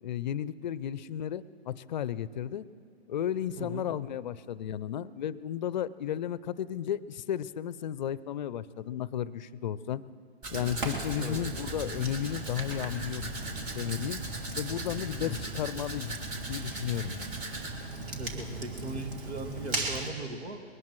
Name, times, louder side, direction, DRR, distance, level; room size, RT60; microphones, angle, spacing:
voice 1, 0.0-2.6 3.1-10.0 10.5-13.3 13.7-14.2 14.5-16.1 16.5-17.3, left 10 dB, 45° left, 18 dB, 0.5 m, -34 dB
voice 2, 3.6-3.9 11.1-11.4 15.2-15.4 17.9-20.6, right 2 dB, 85° right, 5 dB, 1.9 m, -39 dB
Domestic sounds home sounds, 10.4-17.7, right 2 dB, 30° right, 2.6 m, -40 dB
Fire, 10.5-20.1, right 2 dB, 55° right, 2.6 m, -38 dB
22.0 x 19.0 x 3.1 m, 2.2 s
hypercardioid pair, 140°, 33 cm